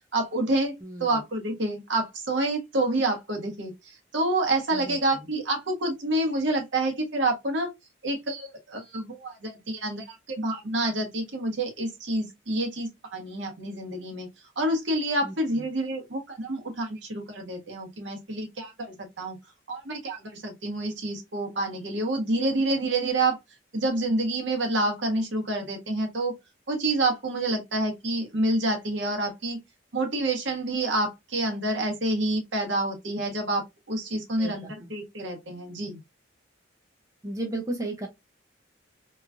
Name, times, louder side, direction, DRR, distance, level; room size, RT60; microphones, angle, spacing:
voice 1, 0.1-0.7 1.0-7.7 8.0-14.3 14.6-19.4 19.7-23.4 23.7-26.3 26.7-29.6 29.9-36.0, right 2 dB, 65° right, 1.0 m, -28 dB
voice 2, 34.4-34.7 37.2-38.1, right 2 dB, 15° right, 0.4 m, -33 dB
3.0 x 2.3 x 2.4 m
head